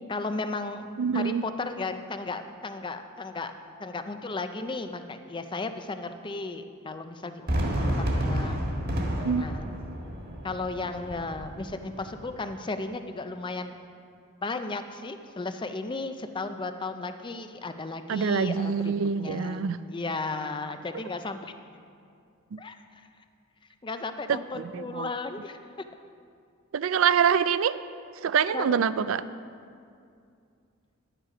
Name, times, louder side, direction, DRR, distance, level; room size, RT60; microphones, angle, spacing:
voice 1, 0.1-3.5 3.8-7.5 8.1-8.7 9.4-9.8 10.4-13.7 14.4-19.6 19.9-21.5 22.6-23.1 23.8-25.6 28.5-28.8, left 3 dB, 20° left, 8 dB, 0.5 m, -35 dB
voice 2, 1.0-1.4 9.2-9.5 18.1-19.8 22.5-22.6 24.3-25.1 26.7-27.8 28.2-29.2, right 7 dB, 65° right, 15 dB, 0.4 m, -25 dB
Fireworks, 7.5-12.5, equal, 45° right, 1.6 m, -30 dB
11.5 x 9.0 x 5.0 m, 2.4 s
head